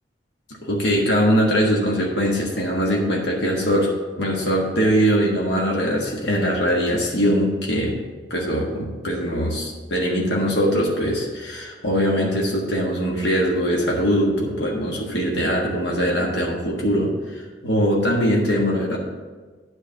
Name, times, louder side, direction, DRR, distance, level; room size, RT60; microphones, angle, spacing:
voice 1, 0.6-3.9 4.2-8.0 8.3-19.0, equal, 70° left, -2 dB, 1.5 m, -21 dB
9.2 x 4.5 x 6.9 m, 1.4 s
head